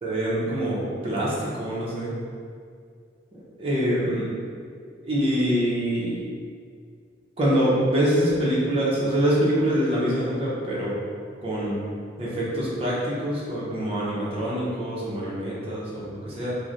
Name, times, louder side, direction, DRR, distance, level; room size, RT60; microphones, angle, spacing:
voice 1, 0.0-2.1 3.3-4.3 5.0-6.2 7.4-11.0 11.4-11.8 12.2-16.6, equal, 30° right, -7 dB, 0.7 m, -25 dB
3.2 x 2.1 x 3.8 m, 2.2 s
head